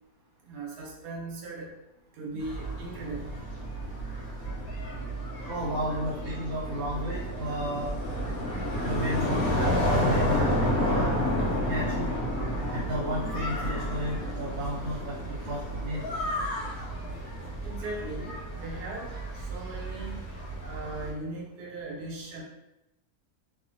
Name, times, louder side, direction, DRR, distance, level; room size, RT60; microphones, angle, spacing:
voice 1, 0.4-1.7 2.2-3.3 17.6-18.3 18.6-19.1 19.4-20.2 20.6-22.4, right 2 dB, 85° right, -1 dB, 1.2 m, -38 dB
sound 1, 2.4-21.1, equal, 70° left, 1.3 m, -31 dB
voice 2, 5.5-7.9 8.8-11.2 11.6-12.1 12.7-16.1, equal, 65° right, -5 dB, 0.9 m, -33 dB
2.7 x 2.4 x 2.6 m, 0.91 s
omnidirectional pair, 1.6 m